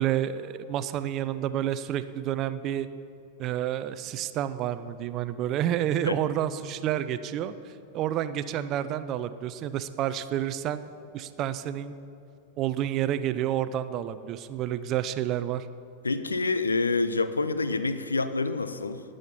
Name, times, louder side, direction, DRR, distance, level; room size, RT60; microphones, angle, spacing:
voice 1, 0.0-2.9 3.4-7.5 7.9-10.8 11.1-11.9 12.6-15.7, right 11 dB, 35° right, 13 dB, 0.5 m, -29 dB
voice 2, 16.0-19.0, left 3 dB, 75° left, 12 dB, 0.6 m, -27 dB
19.0 x 6.5 x 5.6 m, 2.7 s
figure-of-eight pair, 90°, 0 cm